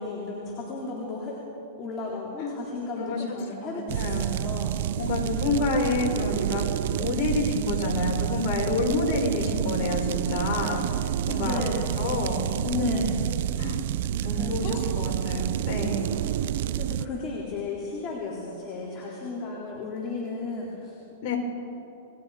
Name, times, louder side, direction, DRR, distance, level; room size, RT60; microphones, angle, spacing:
voice 1, 0.0-1.4 1.8-4.8 11.4-11.9 12.7-13.2 13.4-13.6 14.2-14.8 16.2-16.4 16.8-21.0, left 3 dB, 30° left, -4 dB, 4.0 m, -34 dB
voice 2, 3.9-4.4 5.0-11.6 12.0-13.2 13.6-13.8 14.2-16.1 21.2-21.4, left 3 dB, 45° left, 0 dB, 5.9 m, -28 dB
sound 1, 3.9-17.1, right 11 dB, 65° right, 0.6 m, -29 dB
28.5 x 21.5 x 5.1 m, 2.9 s
hypercardioid pair, 135°, 0 cm